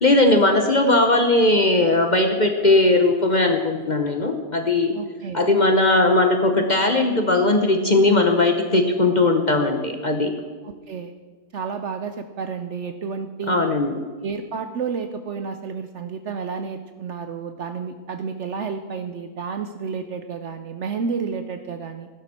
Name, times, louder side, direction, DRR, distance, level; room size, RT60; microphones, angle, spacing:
voice 1, 0.0-4.9 5.3-10.3 13.5-13.9, left 2 dB, 35° left, 4 dB, 0.8 m, -18 dB
voice 2, 4.9-5.4 8.1-8.3 10.6-11.1 11.5-13.7 14.2-22.1, right 5 dB, 60° right, 8 dB, 0.8 m, -31 dB
15.5 x 11.0 x 4.3 m, 1.5 s
omnidirectional pair, 1.6 m